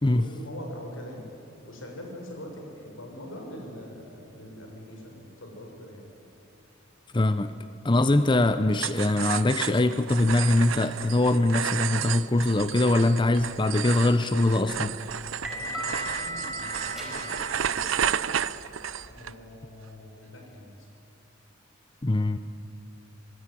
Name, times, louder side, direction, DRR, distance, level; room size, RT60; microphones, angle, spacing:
voice 1, 0.1-1.2 1.6-6.0 15.5-18.1 19.1-20.7, left 1 dB, 85° left, 2 dB, 6.2 m, -43 dB
voice 2, 7.1-7.5 7.8-14.9 22.0-22.4, left 2 dB, 25° left, 11 dB, 0.6 m, -22 dB
sound 1, 8.7-19.3, right 9 dB, 80° right, 0.6 m, -32 dB
sound 2, 14.4-19.2, equal, ahead, 4.7 m, -38 dB
25.5 x 19.0 x 9.9 m, 2.6 s
head